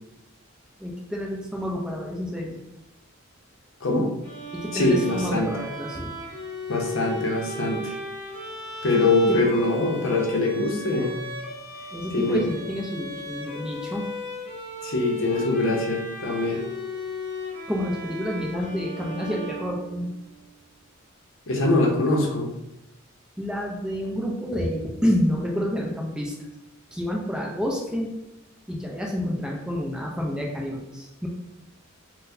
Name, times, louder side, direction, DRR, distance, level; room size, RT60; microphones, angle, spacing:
voice 1, 0.8-2.6 4.5-6.1 9.3-9.4 11.9-14.1 17.7-20.1 23.4-26.3 26.9-28.1 28.7-31.3, equal, 5° right, -2 dB, 0.5 m, -29 dB
Bowed string instrument, 4.2-20.3, left 1 dB, 30° left, 1.2 m, -36 dB
voice 2, 4.7-5.5 6.7-8.0 8.8-11.2 12.1-12.4 14.8-16.6 21.5-22.5, left 2 dB, 70° left, 0 dB, 0.6 m, -23 dB
4.1 x 2.1 x 2.6 m, 0.88 s
head